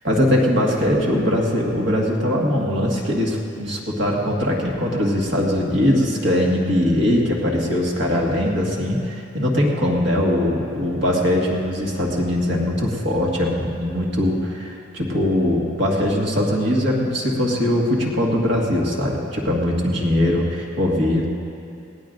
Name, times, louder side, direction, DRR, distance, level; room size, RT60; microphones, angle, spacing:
voice 1, 0.0-21.3, left 1 dB, 60° right, -2 dB, 1.9 m, -21 dB
20.0 x 17.0 x 2.6 m, 2.6 s
head